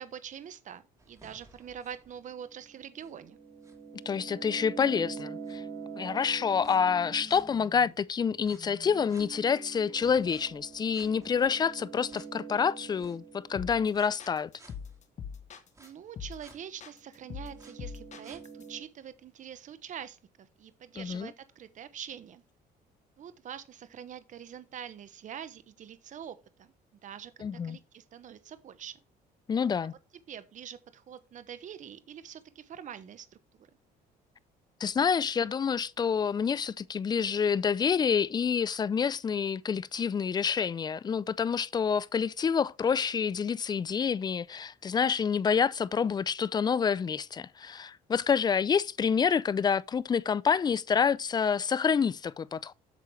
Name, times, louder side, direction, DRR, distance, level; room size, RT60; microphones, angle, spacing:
voice 1, 0.0-3.4 15.8-22.4 23.2-26.7 27.0-27.3 27.6-29.0 30.3-33.7, right 9 dB, 50° right, 0.9 m, -45 dB
sound 1, 1.0-7.9 8.5-14.1 14.6-14.7 15.8-15.9 16.4-16.5 17.1-18.8, right 4 dB, 20° right, 2.2 m, -45 dB
voice 2, 4.1-5.6 6.0-14.5 21.0-21.3 27.4-27.8 29.5-29.9 34.8-52.7, left 6 dB, 25° left, 0.4 m, -28 dB
sound 2, 13.6-13.9 14.2-15.9 16.2-16.5 16.8-18.6, left 7 dB, 45° left, 1.1 m, -42 dB
8.3 x 6.3 x 3.2 m
cardioid pair, 110°, 17 cm